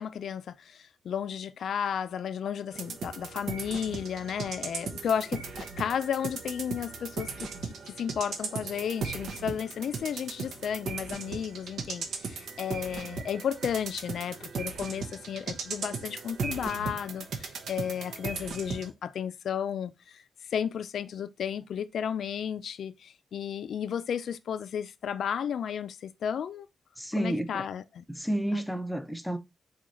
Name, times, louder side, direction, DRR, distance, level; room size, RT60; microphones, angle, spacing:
voice 1, 0.0-20.2 20.5-26.7 27.2-28.0 28.5-28.6, left 8 dB, 65° left, 0.4 m, -33 dB
sound 1, 2.7-18.9, right 5 dB, 75° right, 0.9 m, -37 dB
voice 2, 27.0-27.7 28.1-29.4, right 1 dB, ahead, 0.5 m, -31 dB
4.2 x 3.8 x 3.1 m
wide cardioid pair, 175°, 0 cm